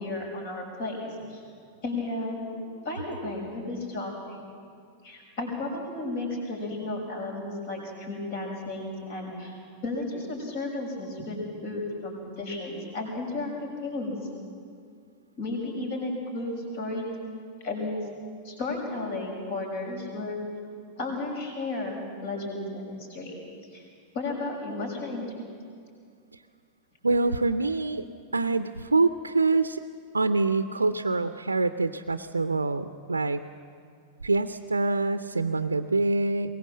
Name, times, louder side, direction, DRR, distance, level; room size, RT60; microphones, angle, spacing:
voice 1, 0.0-1.4 1.8-4.4 5.0-9.5 9.8-14.2 15.4-17.1 17.6-18.0 18.4-20.4 21.0-23.4 23.7-23.9 24.1-25.3, left 2 dB, 50° left, 1 dB, 6.2 m, -33 dB
voice 2, 27.0-28.0 28.3-29.8 30.1-33.4 34.2-36.6, right 3 dB, 80° right, 11 dB, 0.6 m, -25 dB
23.0 x 20.5 x 7.5 m, 2.2 s
figure-of-eight pair, 90°, 0 cm